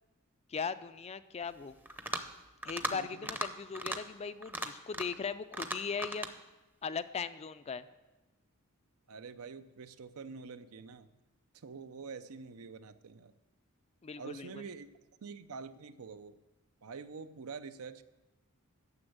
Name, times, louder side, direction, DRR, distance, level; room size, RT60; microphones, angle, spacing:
voice 1, 0.5-1.8 2.6-6.3 6.8-7.9 14.0-14.6, left 5 dB, 30° left, 13 dB, 0.4 m, -39 dB
sound 1, 1.9-2.3 2.6-2.9 3.2-3.5 3.7-4.0 4.4-5.2 5.5-6.3, right 1 dB, 10° right, 0.6 m, -37 dB
voice 2, 9.1-11.1 11.5-13.3 14.2-14.9 15.2-16.4 16.8-18.0, right 5 dB, 75° right, 13 dB, 0.6 m, -46 dB
9.7 x 7.0 x 8.0 m, 1.1 s
head